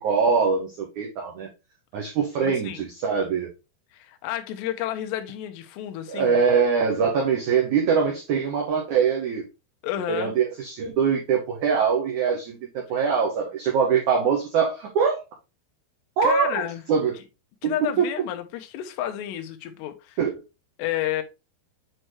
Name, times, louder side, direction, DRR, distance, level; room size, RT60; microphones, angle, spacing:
voice 1, 0.0-1.5 1.9-3.5 6.1-9.5 10.1-15.2 16.2-16.6 16.9-17.1 17.6-18.0 20.2-20.3, right 6 dB, 90° right, 1.7 m, -23 dB
voice 2, 2.4-2.8 3.9-6.4 9.8-10.4 16.2-16.8 17.6-20.2 20.8-21.2, left 12 dB, 80° left, 2.9 m, -31 dB
7.8 x 4.4 x 3.2 m
omnidirectional pair, 5.0 m